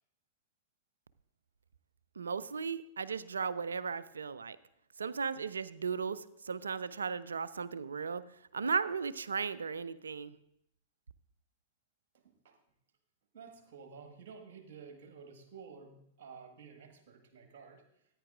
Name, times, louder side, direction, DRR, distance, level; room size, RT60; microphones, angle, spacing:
voice 1, 2.2-4.6 5.0-8.2 8.5-10.4, right 5 dB, 75° right, 17 dB, 0.4 m, -36 dB
voice 2, 13.3-17.8, right 5 dB, 55° right, 5 dB, 1.6 m, -52 dB
14.5 x 9.4 x 2.5 m, 0.76 s
figure-of-eight pair, 100°, 0 cm